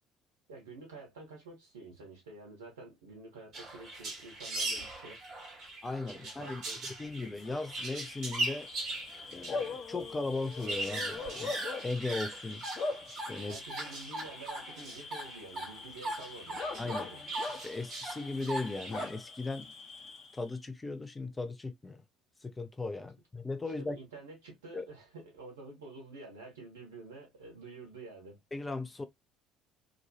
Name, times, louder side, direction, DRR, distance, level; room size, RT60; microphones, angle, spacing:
voice 1, 0.5-5.2 6.1-6.8 13.4-16.6 16.9-17.2 23.8-28.4, right 3 dB, 70° right, 1.2 m, -49 dB
sound 1, 3.5-9.7 10.0-10.1 10.3-19.1, right 2 dB, 50° right, 1.3 m, -40 dB
voice 2, 5.8-6.6 7.0-8.7 9.3-11.5 11.8-12.6 13.1-13.6 16.8-17.1 17.6-19.7 20.3-22.0 22.4-24.0 24.7-24.8 28.5-29.0, left 3 dB, 20° left, 0.4 m, -37 dB
Bark / Cricket, 7.3-20.6, left 4 dB, 45° left, 0.7 m, -42 dB
2.8 x 2.3 x 2.7 m
figure-of-eight pair, 55°, 0 cm